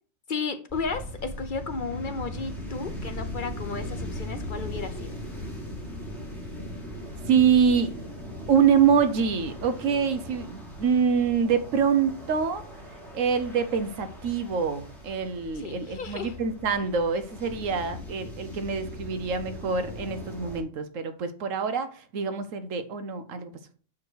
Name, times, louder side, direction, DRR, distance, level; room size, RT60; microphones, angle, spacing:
voice 1, 0.3-5.1 15.6-16.3, left 4 dB, 50° left, 0.7 m, -34 dB
sound 1, 0.7-20.6, left 1 dB, ahead, 2.8 m, -39 dB
voice 2, 7.3-7.9 8.5-12.6 13.1-23.5, right 6 dB, 85° right, 1.2 m, -25 dB
7.3 x 4.8 x 4.6 m
omnidirectional pair, 1.3 m